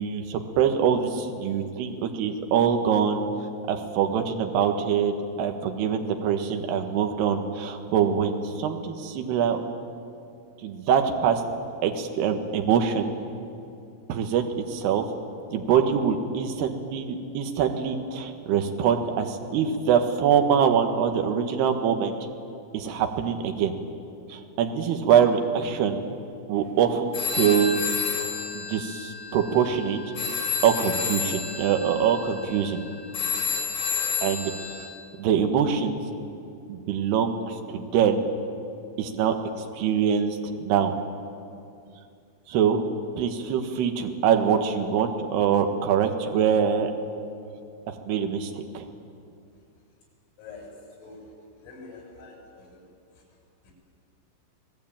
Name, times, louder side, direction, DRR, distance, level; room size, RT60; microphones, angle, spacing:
voice 1, 0.0-3.2 3.7-9.6 10.6-11.4 11.8-13.1 14.1-15.1 15.5-22.1 22.7-23.7 24.3-26.0 26.5-28.0 28.5-30.0 30.6-32.8 34.2-34.9 35.2-36.0 36.7-38.3 39.0-41.0 42.5-42.8 43.2-46.9 47.9-48.8, right 7 dB, 65° right, 4 dB, 3.3 m, -24 dB
sound 1, 27.1-34.9, left 6 dB, 30° left, 5.0 m, -30 dB
voice 2, 50.4-50.7 51.0-51.3 51.6-52.8 53.6-53.7, left 3 dB, 85° left, 0 dB, 9.0 m, -45 dB
29.0 x 19.0 x 8.9 m, 2.5 s
omnidirectional pair, 5.8 m